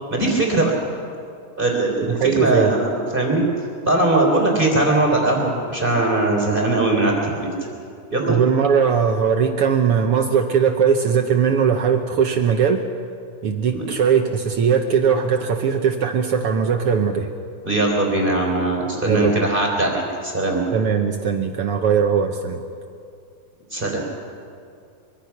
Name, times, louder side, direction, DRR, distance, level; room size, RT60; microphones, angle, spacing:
voice 1, 0.1-0.7 1.6-3.4 3.9-7.5 8.1-8.4 13.7-13.9 17.6-20.6 23.7-24.0, right 2 dB, 15° right, 0 dB, 3.6 m, -20 dB
voice 2, 2.1-2.7 8.3-12.8 13.4-17.3 19.0-19.5 20.7-22.6, right 6 dB, 65° right, 5 dB, 1.4 m, -19 dB
23.5 x 23.5 x 6.0 m, 2.4 s
omnidirectional pair, 3.6 m